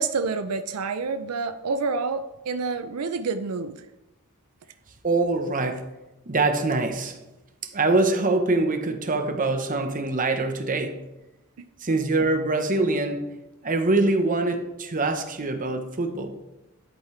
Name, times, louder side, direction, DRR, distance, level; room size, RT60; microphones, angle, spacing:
voice 1, 0.0-3.8, right 4 dB, 85° right, 11 dB, 0.5 m, -28 dB
voice 2, 5.0-5.8 6.3-7.2 7.7-11.0 11.8-13.2 13.6-16.4, right 2 dB, 40° right, 6 dB, 1.0 m, -24 dB
11.0 x 8.5 x 3.3 m, 0.98 s
head